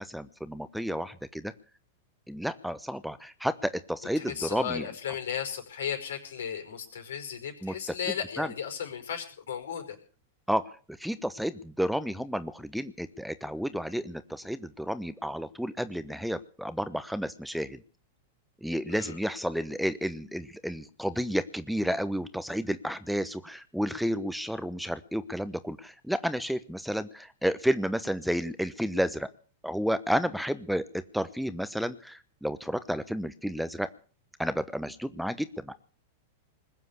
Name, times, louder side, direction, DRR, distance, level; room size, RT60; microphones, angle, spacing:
voice 1, 0.0-1.5 2.3-4.9 7.6-7.7 8.4-8.5 10.5-10.7 11.0-17.8 18.6-29.3 29.6-33.9 34.4-35.7, equal, ahead, 14 dB, 1.0 m, -31 dB
voice 2, 4.2-10.0 18.9-19.2, left 8 dB, 75° left, 6 dB, 5.2 m, -35 dB
21.0 x 7.6 x 8.4 m, 0.40 s
hypercardioid pair, 100°, 0 cm